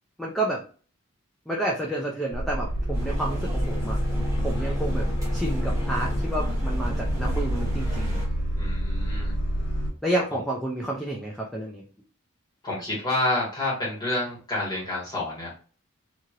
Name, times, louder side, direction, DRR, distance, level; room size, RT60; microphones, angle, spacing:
voice 1, 0.2-0.6 1.5-4.0 4.4-8.2 10.0-11.8, right 1 dB, ahead, -3 dB, 0.4 m, -30 dB
sound 1, 2.3-9.9, equal, 65° left, 1.5 m, -27 dB
sound 2, 2.9-8.3, equal, 15° right, 1.1 m, -35 dB
voice 2, 8.6-9.3 10.1-10.4 12.6-15.5, left 2 dB, 20° left, -6 dB, 1.6 m, -29 dB
2.9 x 2.8 x 2.4 m, 0.40 s
head